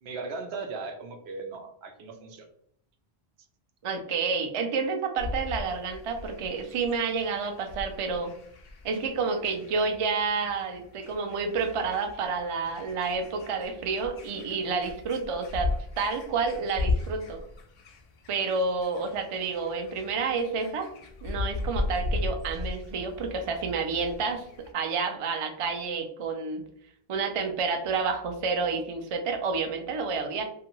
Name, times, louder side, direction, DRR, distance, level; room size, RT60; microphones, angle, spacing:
voice 1, 0.0-2.5, right 4 dB, 90° right, 5 dB, 0.9 m, -38 dB
voice 2, 3.8-8.3 8.8-15.7 16.0-17.4 18.3-20.9 21.2-24.4 24.7-26.6 27.1-30.4, right 4 dB, 50° right, 4 dB, 0.4 m, -29 dB
sound 1, 5.2-24.7, left 3 dB, 60° left, 0.6 m, -37 dB
2.6 x 2.4 x 2.9 m, 0.66 s
omnidirectional pair, 1.0 m